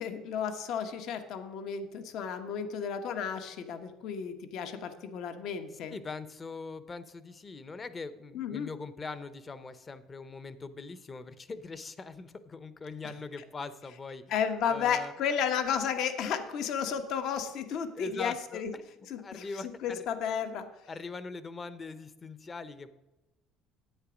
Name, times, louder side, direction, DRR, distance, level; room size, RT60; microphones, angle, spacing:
voice 1, 0.0-6.0 8.3-8.7 14.3-18.7 19.1-19.5 19.8-20.7, left 7 dB, 65° left, 8 dB, 1.1 m, -33 dB
voice 2, 5.9-14.2 14.7-15.1 17.9-20.1 20.9-22.9, left 4 dB, 25° left, 14 dB, 0.8 m, -42 dB
10.0 x 8.6 x 5.1 m, 1.0 s
cardioid pair, 120°, 0 cm